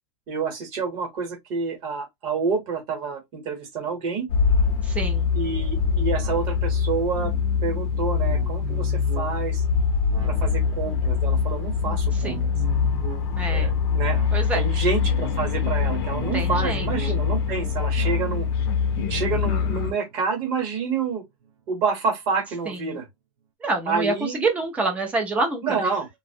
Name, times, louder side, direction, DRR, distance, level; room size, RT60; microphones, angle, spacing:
voice 1, 0.3-4.3 5.3-7.3 7.6-9.6 10.2-12.5 13.5-14.2 14.5-18.5 19.1-21.2 21.7-23.1 23.9-24.4 25.6-26.1, right 5 dB, 30° right, 0.9 m, -28 dB
sound 1, 4.3-19.9, left 6 dB, 45° left, 0.5 m, -24 dB
voice 2, 4.8-5.3 12.2-12.4 13.4-13.7 14.3-14.6 16.3-16.9 22.7-22.8 23.6-24.1 24.4-25.6, right 3 dB, 10° right, 0.3 m, -26 dB
sound 2, 5.8-21.5 21.9-22.0, right 7 dB, 70° right, 0.6 m, -41 dB
2.5 x 2.0 x 2.6 m
supercardioid pair, 170°, 18 cm